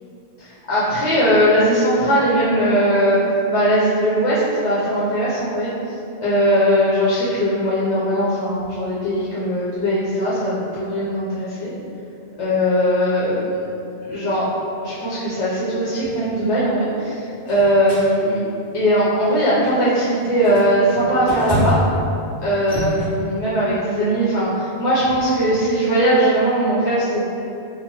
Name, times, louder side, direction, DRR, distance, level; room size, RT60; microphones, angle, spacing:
voice 1, 0.4-3.2 3.5-5.7 6.2-11.7 12.4-13.4 14.0-14.5 14.8-18.4 18.7-21.7 22.4-27.2, equal, 80° left, -10 dB, 1.1 m, -19 dB
sound 1, 16.0-16.2 17.5-18.1 18.7-18.9 19.6-19.8 20.2-22.0 22.5-23.1, equal, 35° left, 1.7 m, -25 dB
3.8 x 2.1 x 4.3 m, 2.7 s
omnidirectional pair, 1.1 m